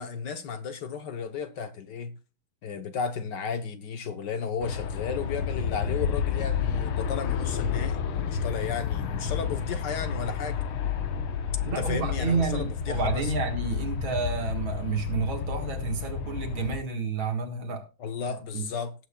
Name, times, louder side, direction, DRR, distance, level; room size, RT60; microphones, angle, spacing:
voice 1, 0.0-2.1 2.6-10.6 11.7-13.3 18.0-18.9, left 6 dB, 60° left, 1.4 m, -34 dB
Aircraft, 4.6-16.8, left 7 dB, 90° left, 1.9 m, -30 dB
voice 2, 11.6-17.9 18.3-18.7, right 4 dB, 70° right, 2.5 m, -30 dB
18.0 x 8.0 x 2.3 m
omnidirectional pair, 2.3 m